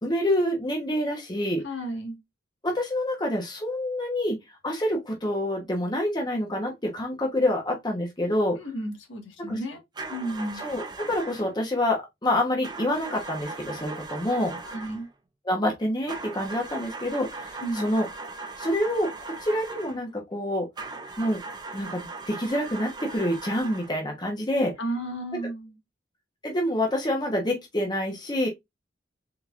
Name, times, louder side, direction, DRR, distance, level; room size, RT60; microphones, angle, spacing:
voice 1, 0.0-1.6 2.6-4.4 4.6-8.6 9.5-9.6 10.6-14.6 15.5-18.1 18.6-20.7 21.2-21.4 21.7-24.7 26.4-28.5, left 1 dB, 25° left, 1.1 m, -27 dB
voice 2, 1.6-2.2 8.5-9.8 10.1-10.6 14.6-15.1 17.6-17.9 24.8-25.8, right 1 dB, 85° left, 1.7 m, -33 dB
sound 1, 10.0-11.5 12.6-15.1 16.1-20.0 20.8-24.0, right 3 dB, 25° right, 0.6 m, -39 dB
4.3 x 3.9 x 2.5 m
head